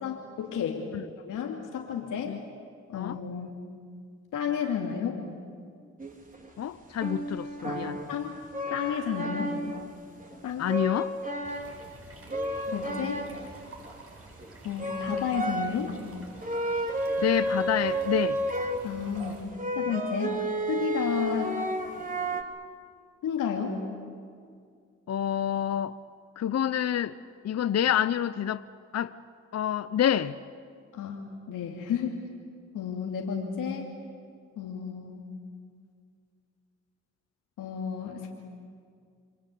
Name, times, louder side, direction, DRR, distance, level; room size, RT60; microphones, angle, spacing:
voice 1, 0.0-0.8 1.2-2.4 2.9-3.6 4.3-5.2 7.7-8.4 8.7-9.6 10.4-10.7 12.7-13.2 14.6-15.9 18.8-19.4 19.7-20.4 20.7-21.5 23.2-23.8 30.9-31.2 31.5-32.1 32.7-33.9 34.6-35.2 37.6-38.3, left 7 dB, 80° left, 2.8 m, -32 dB
sound 1, 6.0-6.5 7.0-8.2 8.5-9.8 10.2-10.4 10.7-11.8 12.3-13.6 13.8-13.9 14.4-14.5 14.8-15.9 16.4-22.4, right 1 dB, 25° right, 4.1 m, -31 dB
voice 2, 6.6-8.0 10.6-11.1 17.2-18.4 25.1-26.0 26.4-27.2 27.4-28.6 28.9-29.1 29.5-30.4, left 10 dB, 55° left, 0.8 m, -27 dB
sound 2, 11.4-19.4, right 2 dB, 45° right, 7.5 m, -49 dB
29.0 x 23.0 x 8.6 m
supercardioid pair, 55°, 31 cm